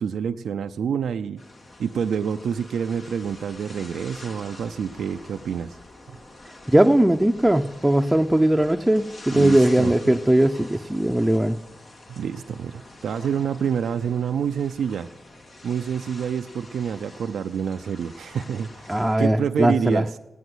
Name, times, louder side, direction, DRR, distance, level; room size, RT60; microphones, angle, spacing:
voice 1, 0.0-1.4 1.8-5.8 6.1-6.2 9.3-10.2 12.1-15.1 15.6-20.2, right 7 dB, 80° right, 8 dB, 0.4 m, -27 dB
sound 1, 1.4-19.2, left 2 dB, 60° left, 2.7 m, -45 dB
voice 2, 6.7-11.6 18.9-20.0, right 1 dB, 10° right, 4 dB, 0.7 m, -19 dB
17.0 x 9.2 x 7.9 m, 1.1 s
supercardioid pair, 40°, 0 cm